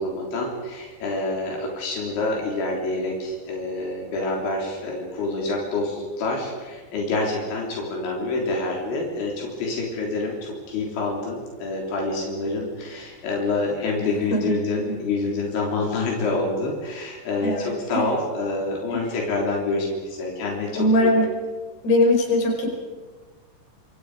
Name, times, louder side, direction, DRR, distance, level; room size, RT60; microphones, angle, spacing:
voice 1, 0.0-20.9, left 2 dB, 80° left, -1 dB, 6.0 m, -27 dB
voice 2, 14.0-14.4 14.9-15.0 17.4-18.1 18.9-19.0 20.8-21.3 21.8-22.7, left 1 dB, 60° left, 1 dB, 6.6 m, -21 dB
27.5 x 26.5 x 5.0 m, 1.4 s
omnidirectional pair, 5.2 m